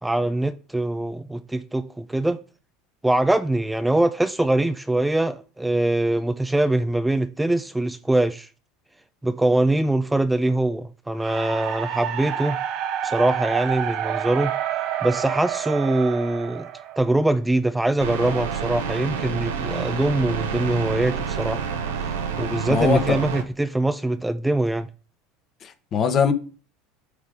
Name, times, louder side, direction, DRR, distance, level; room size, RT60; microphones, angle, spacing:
voice 1, 0.0-2.4 3.0-8.5 9.2-12.6 13.0-14.5 15.0-16.7 17.0-21.6 22.4-24.9, right 1 dB, 5° right, 0.4 m, -23 dB
sound 1, 11.2-17.3, right 10 dB, 55° right, 0.9 m, -29 dB
sound 2, 18.0-23.4, right 6 dB, 80° right, 1.0 m, -28 dB
voice 2, 22.7-23.2 25.6-26.3, left 6 dB, 45° left, 1.2 m, -21 dB
8.2 x 3.5 x 5.1 m
hypercardioid pair, 80°, 0 cm